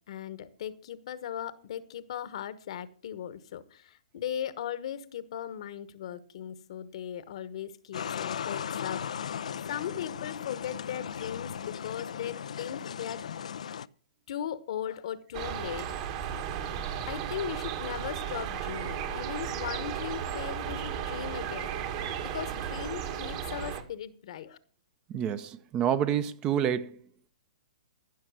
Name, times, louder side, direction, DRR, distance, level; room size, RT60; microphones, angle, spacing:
voice 1, 0.1-13.2 14.3-16.2 17.1-24.6, left 9 dB, 60° left, 1.2 m, -38 dB
sound 1, 7.9-13.9, left 8 dB, 75° left, 0.5 m, -37 dB
sound 2, 15.3-23.8, right 8 dB, 45° right, 1.9 m, -35 dB
voice 2, 25.1-27.0, right 9 dB, 25° right, 0.8 m, -28 dB
15.5 x 6.4 x 6.3 m
hypercardioid pair, 135°, 4 cm